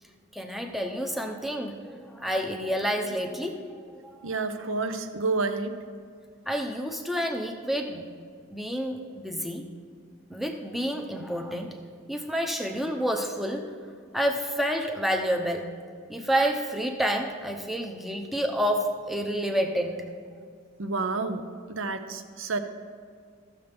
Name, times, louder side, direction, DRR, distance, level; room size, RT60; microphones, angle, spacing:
voice 1, 0.3-4.3 6.5-8.0 8.5-9.7 10.3-11.8 12.1-13.7 14.1-15.7 16.1-20.1, equal, ahead, 3 dB, 0.6 m, -29 dB
voice 2, 4.2-5.7 20.8-22.6, right 3 dB, 70° right, 8 dB, 0.7 m, -29 dB
15.5 x 6.6 x 3.5 m, 2.1 s
head